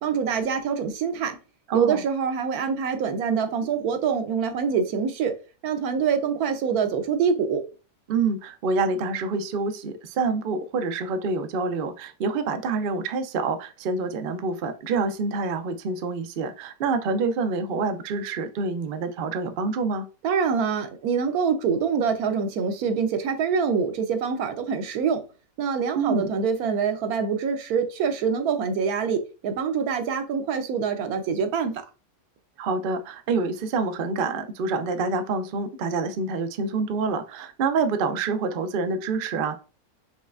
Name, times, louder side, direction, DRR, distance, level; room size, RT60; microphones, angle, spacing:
voice 1, 0.0-1.4 1.7-5.3 5.6-7.6 20.2-25.2 25.6-31.8, right 6 dB, 85° right, 1.2 m, -25 dB
voice 2, 1.7-2.0 8.1-20.1 26.0-26.3 32.6-39.6, right 4 dB, 65° right, 0.5 m, -27 dB
5.2 x 3.1 x 2.4 m
omnidirectional pair, 1.5 m